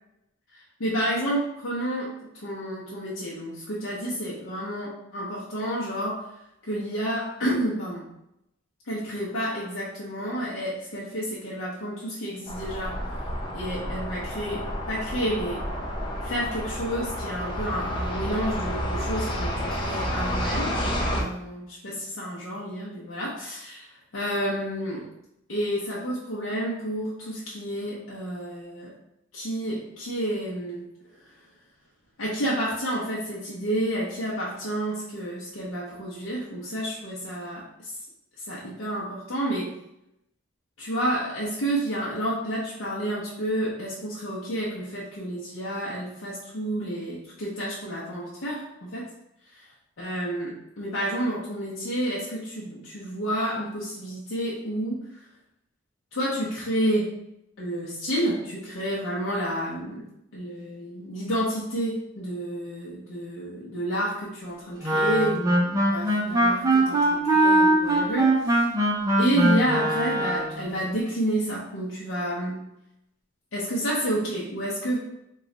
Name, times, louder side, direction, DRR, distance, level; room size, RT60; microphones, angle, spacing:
voice 1, 0.5-6.3 6.6-8.1 8.9-13.0 13.5-15.6 16.2-20.8 21.1-23.9 24.1-25.1 25.5-28.9 29.3-30.9 31.2-31.4 32.2-37.9 38.4-39.7 40.8-49.1 49.5-49.7 50.0-55.1 56.1-57.1 57.6-60.1 60.3-68.6 69.2-72.6 73.5-75.0, right 1 dB, 85° left, -7 dB, 0.7 m, -30 dB
sound 1, 12.5-21.2, equal, 25° left, 0.6 m, -30 dB
Wind instrument woodwind instrument, 64.8-70.6, right 1 dB, 20° right, 0.5 m, -21 dB
3.1 x 2.3 x 3.8 m, 0.83 s
head